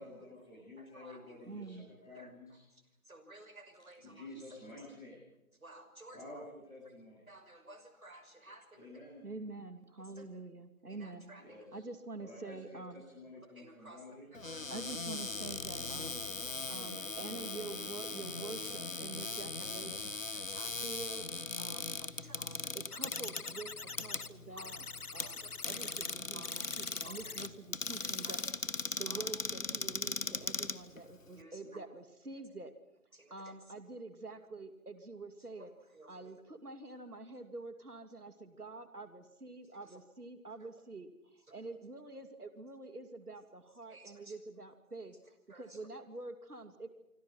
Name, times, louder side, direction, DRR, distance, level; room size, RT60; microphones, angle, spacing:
voice 1, 0.0-2.6 4.0-5.1 6.1-7.2 8.7-9.2 11.3-11.8 12.1-14.2, left 2 dB, 5° left, -13 dB, 3.7 m, -51 dB
voice 2, 0.8-1.4 2.1-4.8 5.6-6.2 7.3-8.9 10.0-10.3 10.9-11.6 13.5-14.0 14.3-15.0 16.4-16.9 20.3-20.9 21.6-21.8 22.1-22.7 24.1-24.7 25.2-25.9 26.3-27.4 28.0-28.5 28.8-29.3 31.4-31.8 33.1-33.7 35.6-36.3 39.7-40.0 40.6-40.7 41.5-41.6 43.9-44.4 45.5-45.8, right 1 dB, 70° right, 8 dB, 6.0 m, -56 dB
voice 3, 1.4-1.9 9.2-11.3 11.7-13.0 14.7-16.2 16.7-20.2 20.8-22.1 22.4-24.8 25.1-28.4 29.0-32.7 33.3-35.7 36.1-45.2 45.5-46.9, right 3 dB, 85° right, 8 dB, 2.7 m, -47 dB
Cupboard open or close, 14.3-31.4, left 3 dB, 60° left, 1.4 m, -39 dB
sound 1, 22.9-24.3 24.6-26.1 26.4-27.5 27.8-28.5 28.8-28.9, left 4 dB, 80° left, 1.3 m, -45 dB
26.5 x 26.0 x 6.0 m, 0.89 s
figure-of-eight pair, 180°, 44 cm